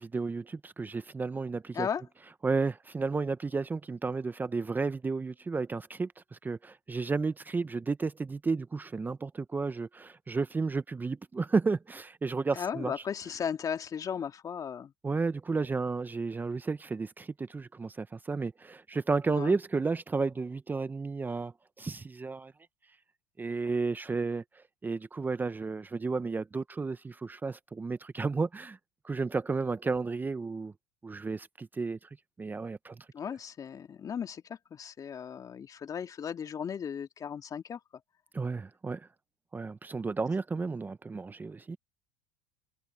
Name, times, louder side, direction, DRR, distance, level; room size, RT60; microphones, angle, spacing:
voice 1, 0.0-1.9 2.4-12.9 15.0-22.5 23.4-24.4 24.8-28.8 29.0-30.7 31.0-32.1 32.4-33.0 38.3-39.1 39.5-41.8, right 4 dB, 15° right, 0.9 m, -32 dB
voice 2, 12.5-14.9 19.3-19.6 33.1-37.8, left 7 dB, 35° left, 2.3 m, -36 dB
hypercardioid pair, 85°, 11 cm